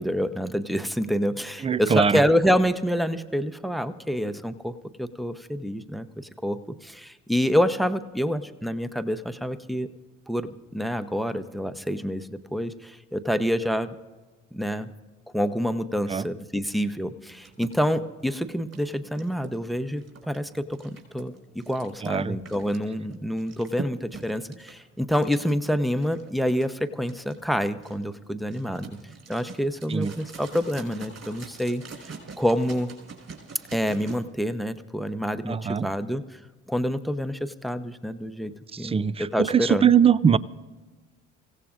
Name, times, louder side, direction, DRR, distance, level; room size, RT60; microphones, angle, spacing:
voice 1, 0.0-9.9 10.3-13.9 14.5-14.9 15.3-29.0 29.3-32.9 33.7-36.4 36.7-39.9, equal, ahead, 0.8 m, -27 dB
voice 2, 1.6-2.2 16.1-16.2 22.0-22.4 29.9-30.1 35.5-35.9 38.7-40.4, right 7 dB, 15° right, 0.4 m, -21 dB
sound 1, 17.4-34.2, right 5 dB, 40° right, 4.8 m, -44 dB
26.5 x 16.0 x 2.5 m
hypercardioid pair, 55°, 38 cm